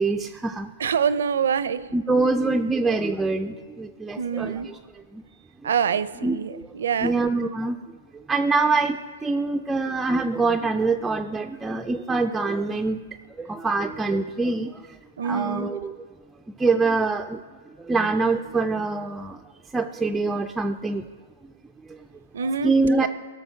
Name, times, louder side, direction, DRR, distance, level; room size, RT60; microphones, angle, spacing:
voice 1, 0.0-0.7 1.9-4.8 5.1-5.2 6.2-6.7 7.0-7.8 8.3-13.0 13.4-14.7 15.2-16.0 16.6-17.4 17.8-19.4 19.7-21.0 21.9-22.0 22.6-23.1, right 3 dB, 10° right, 5 dB, 0.3 m, -24 dB
voice 2, 0.8-1.8 4.2-4.7 5.6-7.4 15.2-15.7 22.3-23.1, right 7 dB, 80° right, 16 dB, 0.5 m, -26 dB
17.0 x 6.5 x 4.5 m, 1.5 s
hypercardioid pair, 140°, 0 cm